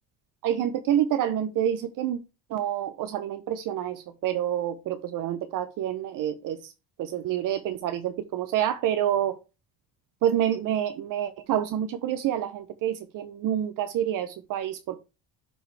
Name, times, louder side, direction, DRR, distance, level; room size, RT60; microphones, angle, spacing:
voice 1, 0.4-2.2 2.5-6.7 7.0-9.4 10.2-15.0, right 10 dB, 60° right, 0.8 m, -28 dB
12.5 x 4.6 x 3.3 m
cardioid pair, 115°, 36 cm